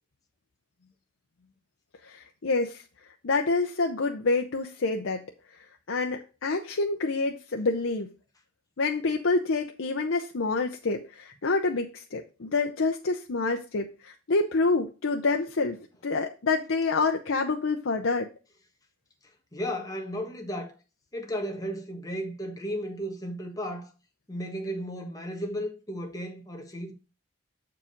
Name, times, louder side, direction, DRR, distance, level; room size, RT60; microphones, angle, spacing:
voice 1, 2.0-2.8 3.2-5.2 5.9-8.1 8.8-15.8 16.0-18.3, left 3 dB, 80° left, 0.7 m, -27 dB
voice 2, 19.5-20.8 21.1-23.9 24.3-26.9, equal, 20° left, 1.3 m, -34 dB
7.3 x 4.8 x 5.1 m
head